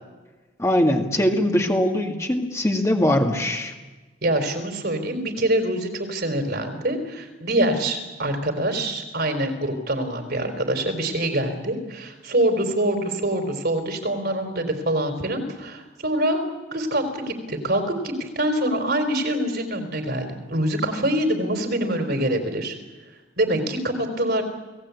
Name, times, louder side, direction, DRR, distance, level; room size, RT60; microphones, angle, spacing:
voice 1, 0.6-3.7, left 1 dB, 15° left, 2 dB, 2.1 m, -21 dB
voice 2, 4.2-22.7 23.4-24.4, right 1 dB, 55° right, 6 dB, 4.1 m, -25 dB
29.5 x 18.5 x 8.5 m, 1.2 s
head